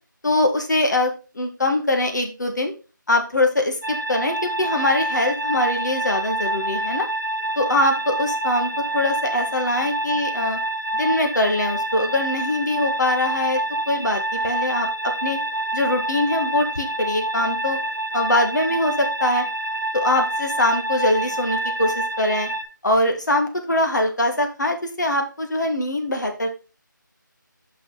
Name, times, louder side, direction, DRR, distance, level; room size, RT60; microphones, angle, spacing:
voice 1, 0.2-2.7 3.1-7.1 7.5-10.6 10.9-13.6 13.9-14.9 15.2-15.4 15.7-17.8 18.1-19.4 19.9-22.5 22.8-26.5, left 1 dB, 60° left, 4 dB, 1.7 m, -22 dB
sound 1, 3.8-22.6, right 1 dB, 70° right, 1.2 m, -27 dB
6.0 x 5.3 x 4.1 m, 0.33 s
figure-of-eight pair, 170°, 11 cm